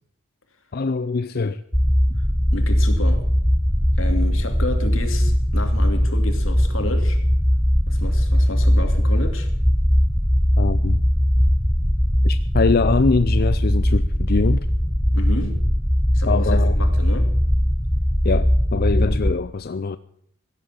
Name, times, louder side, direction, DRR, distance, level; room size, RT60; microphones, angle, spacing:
voice 1, 0.7-1.6 2.1-2.2 10.6-11.0 12.2-14.7 16.3-16.8 18.2-20.0, left 4 dB, 50° left, 0.5 m, -23 dB
sound 1, 1.7-19.3, equal, ahead, 0.8 m, -19 dB
voice 2, 2.5-3.3 4.0-7.2 7.9-9.5 15.1-15.6 16.1-17.3, left 2 dB, 85° left, 2.8 m, -31 dB
16.0 x 8.4 x 9.5 m
head